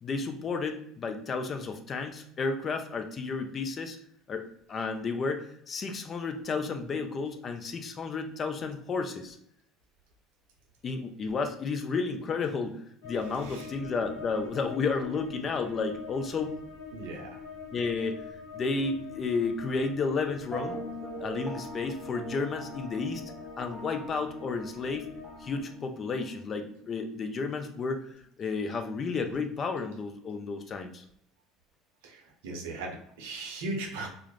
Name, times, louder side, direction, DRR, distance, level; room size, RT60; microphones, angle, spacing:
voice 1, 0.0-4.0 4.3-9.4 10.8-16.6 17.7-18.2 18.5-20.8 21.2-23.2 23.6-25.1 25.4-28.1 28.4-31.0, left 4 dB, 40° left, 6 dB, 0.4 m, -32 dB
sound 1, 13.0-25.6, left 5 dB, 75° left, 0.9 m, -45 dB
voice 2, 16.9-17.3 32.0-34.1, right 2 dB, 80° right, 2 dB, 0.6 m, -37 dB
sound 2, 20.5-28.1, right 1 dB, 15° right, 0.6 m, -43 dB
2.3 x 2.0 x 3.1 m, 0.70 s
hypercardioid pair, 75°, 0 cm